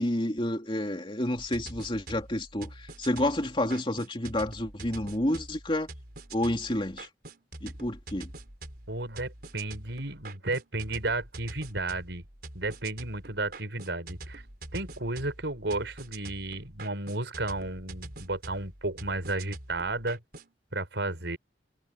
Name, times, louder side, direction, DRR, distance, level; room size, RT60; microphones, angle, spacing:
voice 1, 0.0-5.9 6.3-7.1 7.6-8.3, left 1 dB, 30° left, 3.0 m, -29 dB
sound 1, 1.4-20.5, right 2 dB, 60° right, 4.6 m, -45 dB
voice 2, 8.9-12.2 12.5-14.4 14.7-20.2 20.7-21.4, right 2 dB, 80° right, 5.3 m, -33 dB
head